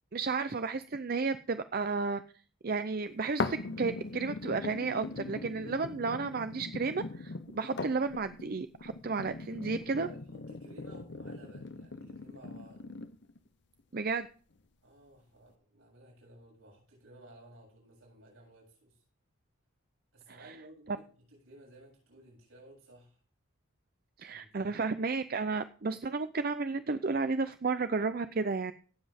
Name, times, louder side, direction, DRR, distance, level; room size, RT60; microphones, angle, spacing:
voice 1, 0.1-2.2 2.6-10.1 13.9-14.3 24.2-28.7, right 4 dB, 45° right, 11 dB, 0.5 m, -32 dB
sound 1, 3.4-13.4 14.0-14.1, left 3 dB, 55° left, 0.7 m, -40 dB
voice 2, 9.4-12.8 14.8-19.0 20.1-23.2 24.2-24.9, right 1 dB, 85° right, -2 dB, 7.5 m, -56 dB
17.5 x 7.5 x 3.5 m, 0.41 s
head